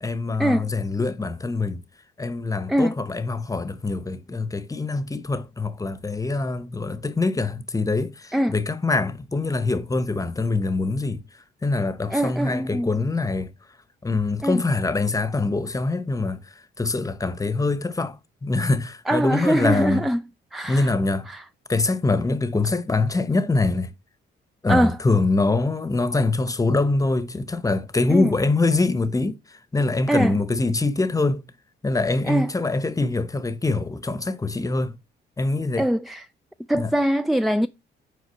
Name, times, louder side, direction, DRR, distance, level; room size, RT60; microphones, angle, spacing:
voice 1, 0.0-1.8 2.2-11.2 11.6-13.5 14.0-16.4 16.8-18.2 18.4-20.0 20.7-21.3 21.7-23.9 24.6-29.4 29.7-31.4 31.8-34.9 35.4-35.9 36.7-36.9, left 3 dB, 15° left, 0.9 m, -24 dB
voice 2, 2.7-3.0 8.3-8.6 12.1-12.9 14.4-14.6 19.1-20.2 20.5-20.9 21.3-21.4 24.7-25.0 28.1-28.4 30.1-30.4 32.2-32.5 35.8-36.3 36.7-37.7, right 1 dB, ahead, 0.3 m, -22 dB
8.2 x 4.7 x 4.5 m
cardioid pair, 90°, 20 cm